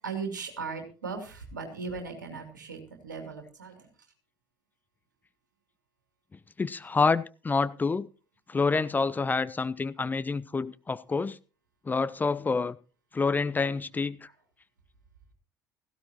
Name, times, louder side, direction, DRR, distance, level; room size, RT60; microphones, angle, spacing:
voice 1, 0.0-3.9, right 5 dB, 80° right, 4 dB, 3.0 m, -38 dB
voice 2, 6.6-8.1 8.5-11.4 11.8-12.8 13.1-14.3, left 4 dB, 20° left, 15 dB, 0.6 m, -27 dB
17.0 x 15.0 x 3.0 m, 0.33 s
figure-of-eight pair, 60°, 10 cm